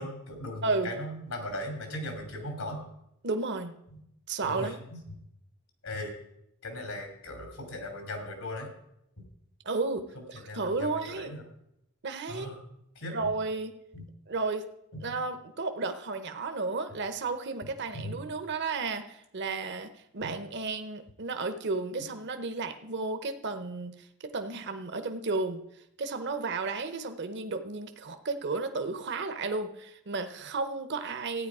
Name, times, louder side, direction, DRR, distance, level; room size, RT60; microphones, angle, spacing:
voice 1, 0.0-2.8 3.9-4.0 4.4-5.0 5.8-6.2 6.6-8.7 10.3-11.4 12.3-12.6 13.0-13.3 13.9-14.0 15.1-15.2 17.9-18.1 20.2-20.3, left 1 dB, 85° left, 4 dB, 2.9 m, -38 dB
voice 2, 0.6-0.9 3.2-3.7 4.3-4.8 9.6-11.3 12.0-12.5 13.1-13.8 14.3-14.7 15.0-25.6 26.0-31.5, right 3 dB, 50° right, 8 dB, 0.9 m, -33 dB
14.5 x 9.2 x 4.8 m, 0.79 s
head